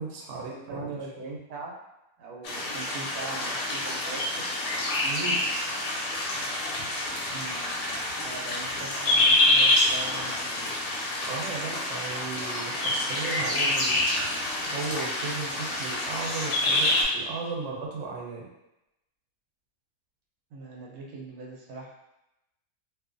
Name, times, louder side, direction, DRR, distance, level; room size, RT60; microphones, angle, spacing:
voice 1, 0.0-1.0 5.0-5.4 11.2-14.0 14.6-18.5, right 4 dB, 65° right, -2 dB, 0.9 m, -36 dB
voice 2, 0.7-1.7 2.2-4.3 5.0-5.1 6.5-6.7 7.3-7.6 7.9-10.7 20.5-21.9, right 3 dB, 85° right, -2 dB, 1.1 m, -41 dB
sound 1, 2.4-17.0, left 1 dB, 90° left, 1.2 m, -27 dB
2.6 x 2.4 x 2.5 m, 0.88 s
omnidirectional pair, 1.6 m